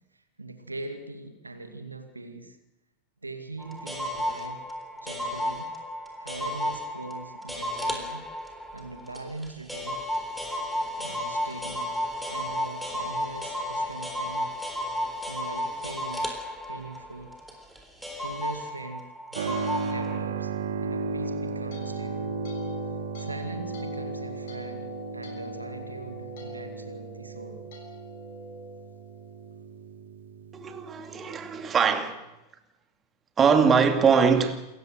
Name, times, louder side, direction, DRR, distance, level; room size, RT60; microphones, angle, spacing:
voice 1, 0.1-2.6 3.2-4.6 5.0-5.7 6.2-8.2 8.7-10.0 11.0-12.0 12.3-14.5 15.3-16.4 16.7-17.4 18.2-20.5 20.8-22.4 22.7-27.6, right 2 dB, 80° right, 2.3 m, -41 dB
sound 1, 3.6-17.8 18.0-20.2, left 1 dB, ahead, 3.8 m, -33 dB
Keyboard (musical), 19.3-31.7, right 4 dB, 60° right, 1.9 m, -35 dB
sound 2, 21.2-29.5, left 4 dB, 55° left, 7.0 m, -45 dB
voice 2, 30.5-32.2 33.4-34.6, right 6 dB, 20° right, 2.5 m, -22 dB
28.0 x 15.0 x 7.9 m
figure-of-eight pair, 90°, 0 cm